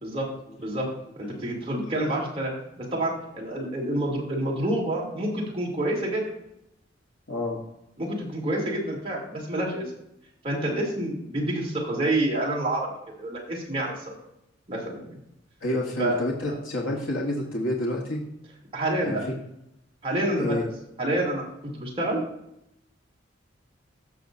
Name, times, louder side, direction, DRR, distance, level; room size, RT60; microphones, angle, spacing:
voice 1, 0.6-0.9 1.2-6.2 8.0-9.8 10.4-12.9 13.2-14.0 14.7-15.2 16.0-16.2 16.5-16.6 18.7-19.2 20.0-20.6 21.0-21.4 21.7-22.2, right 1 dB, 30° right, -3 dB, 2.7 m, -28 dB
voice 2, 7.3-7.6 15.6-18.2 19.0-19.2 20.4-20.7, left 1 dB, 85° left, -2 dB, 1.3 m, -28 dB
15.0 x 6.1 x 2.6 m, 0.81 s
head